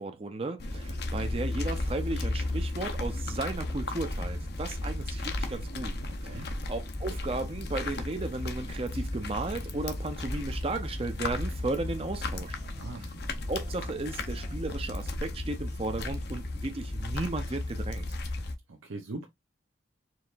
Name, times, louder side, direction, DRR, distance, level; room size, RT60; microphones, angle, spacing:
voice 1, 0.0-6.0 6.2-12.6 13.5-18.1, right 2 dB, 30° right, 0.5 m, -35 dB
sound 1, 0.6-18.5, left 2 dB, 55° left, 0.7 m, -34 dB
voice 2, 6.1-6.5 12.8-13.0 18.7-19.3, right 2 dB, 90° right, 0.7 m, -41 dB
sound 2, 9.2-16.1, right 2 dB, 45° right, 1.2 m, -54 dB
4.6 x 3.2 x 2.4 m
head